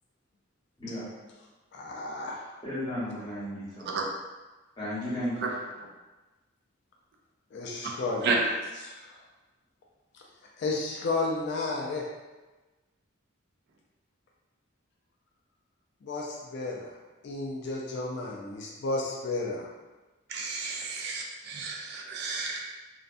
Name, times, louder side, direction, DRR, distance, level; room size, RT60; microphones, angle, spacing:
voice 1, 1.7-2.4 7.5-8.4 8.8-9.2 10.1-10.2 10.6-12.1 16.0-16.9 17.2-19.7, left 3 dB, 55° left, -1 dB, 0.3 m, -32 dB
voice 2, 2.6-3.9 4.8-5.5, equal, 20° left, -10 dB, 1.0 m, -34 dB
voice 3, 20.3-22.6, right 4 dB, 55° right, 1 dB, 0.3 m, -31 dB
2.5 x 2.2 x 2.5 m, 1.2 s
head